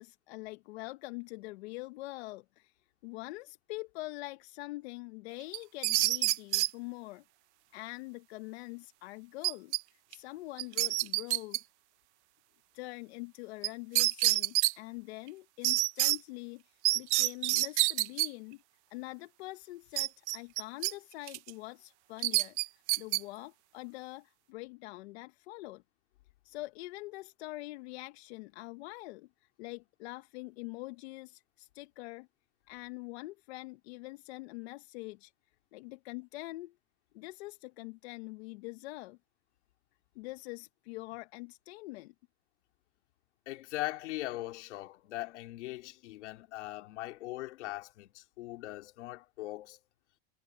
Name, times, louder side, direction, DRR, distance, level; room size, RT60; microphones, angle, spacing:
voice 1, 0.0-2.7 3.0-7.2 7.7-11.6 12.7-18.6 18.9-22.6 23.0-25.8 26.4-32.3 32.7-35.3 35.7-36.7 37.1-39.2 40.1-42.1, left 21 dB, 65° left, 1.0 m, -44 dB
sound 1, 5.5-6.7 9.4-9.8 10.1-10.2 10.6-11.6 13.6-13.7 14.0-14.7 15.6-16.2 16.8-18.3 20.0-20.9 21.3-21.5 22.2-23.2, right 19 dB, 75° right, 0.7 m, -27 dB
voice 2, 43.5-49.8, left 17 dB, 90° left, 3.1 m, -40 dB
supercardioid pair, 160°, 34 cm